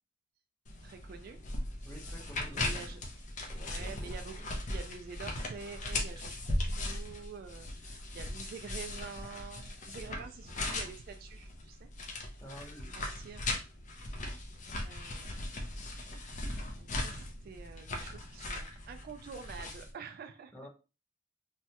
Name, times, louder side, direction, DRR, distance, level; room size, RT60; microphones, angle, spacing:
sound 1, 0.7-19.9, left 2 dB, 40° left, 0.6 m, -38 dB
voice 1, 0.8-1.4 1.9-2.1 2.4-3.0 3.5-11.9 13.0-13.4 14.8-15.5 16.0-16.4 16.8-20.5, right 6 dB, 55° right, 8 dB, 0.3 m, -47 dB
voice 2, 1.8-2.7 3.5-4.5 12.4-13.0 20.5-20.7, equal, 10° left, -1 dB, 0.8 m, -50 dB
3.1 x 2.2 x 2.8 m, 0.31 s
head